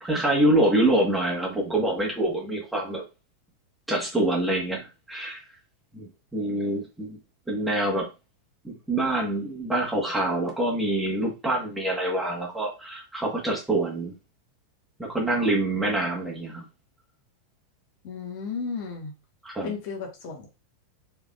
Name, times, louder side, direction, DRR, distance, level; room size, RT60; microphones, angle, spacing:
voice 1, 0.0-3.0 3.9-5.4 5.9-7.2 7.5-8.1 8.6-14.1 15.0-16.6 19.4-19.7, right 1 dB, 5° right, -2 dB, 1.5 m, -26 dB
voice 2, 18.0-19.1 19.6-20.6, left 5 dB, 45° left, 1 dB, 1.5 m, -34 dB
5.4 x 3.5 x 2.5 m, 0.27 s
figure-of-eight pair, 90°, 0 cm